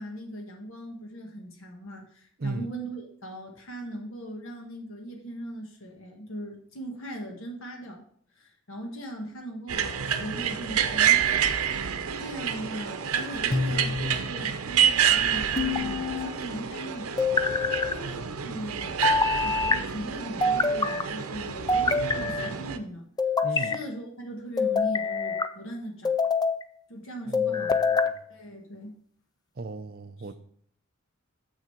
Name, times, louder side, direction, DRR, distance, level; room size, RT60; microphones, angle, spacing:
voice 1, 0.0-8.0 8.4-11.5 12.2-17.6 17.9-19.0 19.3-23.1 23.5-26.1 26.9-27.8 28.3-29.0 30.2-30.3, right 1 dB, 65° left, 2 dB, 1.5 m, -39 dB
sound 1, 9.7-22.8, right 8 dB, 85° right, 0.7 m, -28 dB
sound 2, 13.5-14.2 15.6-16.3 17.2-17.9 19.0-19.8 20.4-21.1 21.7-22.5 23.2-23.8 24.6-25.5 26.0-26.6 27.3-28.1, left 3 dB, 20° left, 0.4 m, -25 dB
voice 2, 23.4-23.7 27.3-28.2 29.6-30.4, right 3 dB, 45° right, 9 dB, 0.6 m, -36 dB
7.4 x 6.3 x 4.5 m, 0.62 s
head